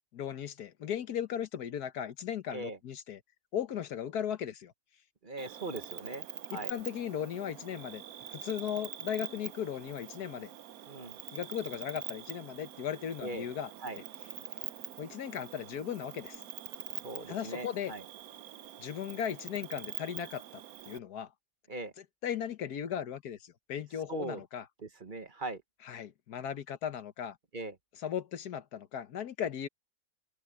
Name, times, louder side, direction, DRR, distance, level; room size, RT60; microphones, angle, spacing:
voice 1, 0.1-3.2 3.5-4.7 6.5-8.0 8.3-10.5 11.3-14.0 15.0-16.4 17.3-18.0 18.8-21.3 22.0-24.7 25.8-27.4 27.9-29.7, left 9 dB, 90° left, 1.6 m, -37 dB
voice 2, 5.2-6.2 6.5-6.7 10.9-11.2 13.2-13.5 13.8-14.0 17.0-18.0 21.7-21.9 24.1-24.4 25.0-25.6 27.5-27.7, right 2 dB, 35° right, 1.3 m, -39 dB
Cricket, 5.4-21.0, right 11 dB, 70° right, 1.2 m, -45 dB
open air
omnidirectional pair, 1.6 m